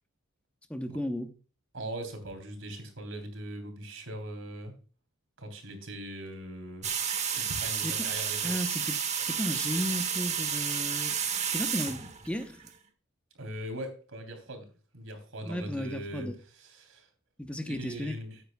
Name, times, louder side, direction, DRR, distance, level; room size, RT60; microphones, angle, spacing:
voice 1, 0.7-1.3 7.7-11.1 11.5-12.7 15.5-16.4 17.4-18.2, equal, 5° left, 0.7 m, -35 dB
voice 2, 1.7-4.7 5.4-6.9 7.3-8.7 13.3-14.7 14.9-17.1 17.6-18.4, right 1 dB, 70° right, 3.3 m, -40 dB
sound 1, 6.8-12.7, right 7 dB, 35° right, 1.3 m, -31 dB
14.0 x 9.3 x 2.3 m
head